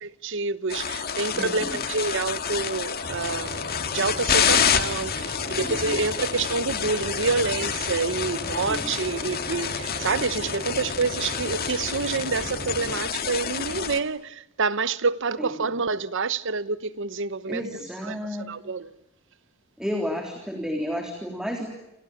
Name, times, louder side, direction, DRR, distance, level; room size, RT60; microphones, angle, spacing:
voice 1, 0.0-17.6 18.0-18.9, right 4 dB, 65° right, 1.0 m, -28 dB
sound 1, 0.7-14.0, left 7 dB, 50° left, 1.9 m, -28 dB
voice 2, 1.3-1.8 5.6-6.0 8.5-8.9 15.4-15.7 17.5-18.5 19.8-21.7, equal, 5° right, 3.4 m, -32 dB
sound 2, 3.0-13.0, right 1 dB, 45° right, 4.9 m, -40 dB
29.5 x 27.5 x 7.3 m
head